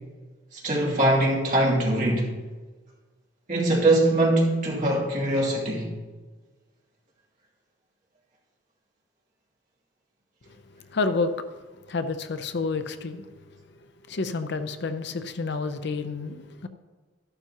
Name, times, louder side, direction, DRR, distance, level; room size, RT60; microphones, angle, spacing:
voice 1, 0.5-2.3 3.5-5.9, right 1 dB, 45° right, -4 dB, 2.9 m, -22 dB
voice 2, 10.9-11.3 11.9-13.3 14.1-16.7, left 4 dB, 60° left, 9 dB, 0.6 m, -29 dB
13.0 x 11.5 x 3.0 m, 1.3 s
head